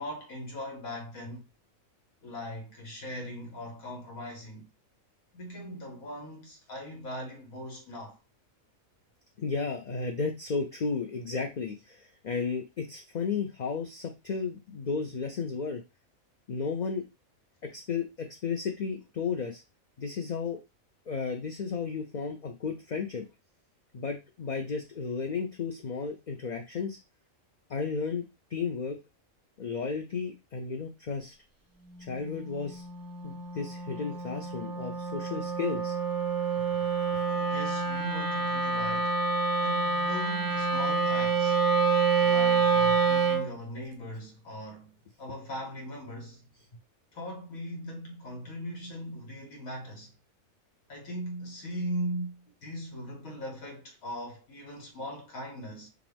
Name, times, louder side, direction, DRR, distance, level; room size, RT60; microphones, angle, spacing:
voice 1, 0.0-1.5 2.2-4.7 5.3-8.2 37.3-39.2 39.6-41.6 42.2-46.5 47.1-50.1 50.9-55.9, equal, 80° left, 1.7 m, -39 dB
voice 2, 9.4-15.8 16.5-17.0 17.6-19.6 20.0-20.6 21.1-23.3 23.9-27.0 27.7-28.2 28.5-29.0 29.6-31.3 32.0-32.8 33.2-36.0, left 5 dB, 55° left, 0.5 m, -33 dB
Wind instrument woodwind instrument, 31.9-43.5, right 5 dB, 25° right, 0.5 m, -27 dB
5.9 x 2.5 x 3.4 m
omnidirectional pair, 1.4 m